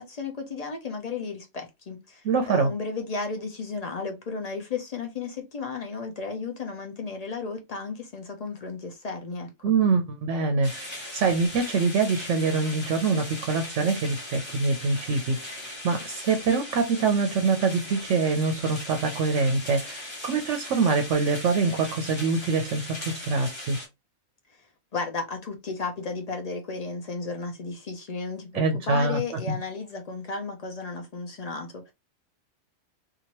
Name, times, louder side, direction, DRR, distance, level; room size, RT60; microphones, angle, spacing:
voice 1, 0.0-9.5 24.9-31.9, left 4 dB, 60° left, 0.4 m, -34 dB
voice 2, 2.2-2.7 9.6-23.8 28.5-29.2, right 4 dB, 70° right, 0.9 m, -25 dB
sound 1, 10.6-23.9, left 1 dB, 25° left, 0.9 m, -39 dB
2.8 x 2.5 x 2.8 m
omnidirectional pair, 1.4 m